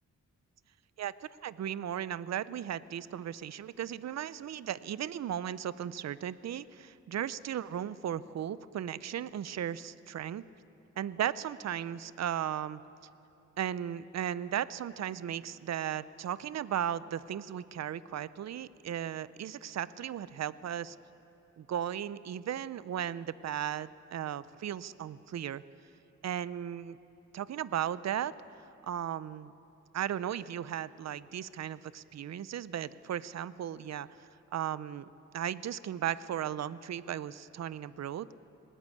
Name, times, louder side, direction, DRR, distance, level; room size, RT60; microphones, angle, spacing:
voice 1, 1.0-10.4 11.0-12.8 13.6-21.0 21.6-25.6 26.2-27.0 27.3-28.3 28.8-29.5 29.9-35.0 35.3-38.3, right 10 dB, 55° right, 17 dB, 0.5 m, -36 dB
20.0 x 18.0 x 8.4 m, 2.9 s
wide cardioid pair, 135°, 31 cm